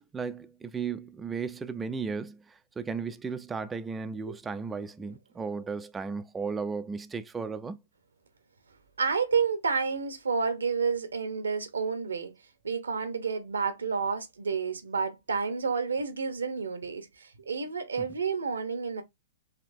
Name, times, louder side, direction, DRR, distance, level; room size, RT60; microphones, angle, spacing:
voice 1, 0.0-7.8, right 5 dB, 15° right, 0.3 m, -35 dB
voice 2, 9.0-12.3 12.6-19.0, right 5 dB, 90° right, 0.8 m, -30 dB
4.2 x 2.8 x 2.6 m
hypercardioid pair, 120°, 0 cm